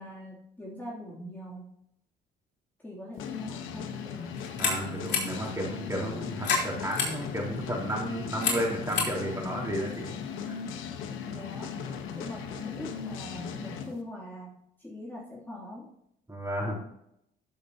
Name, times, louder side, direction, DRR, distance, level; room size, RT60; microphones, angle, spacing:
voice 1, 0.0-1.7 2.8-4.5 5.4-5.5 11.2-11.8 12.2-15.9, left 1 dB, 10° left, -6 dB, 2.8 m, -42 dB
sound 1, 3.2-13.9, left 7 dB, 90° left, 1.2 m, -38 dB
sound 2, 4.3-10.6, left 5 dB, 65° left, 3.9 m, -34 dB
voice 2, 4.6-10.1 10.5-10.6 16.3-16.8, right 1 dB, 15° right, -2 dB, 4.1 m, -33 dB
14.0 x 6.7 x 2.8 m, 0.75 s
cardioid pair, 90°, 20 cm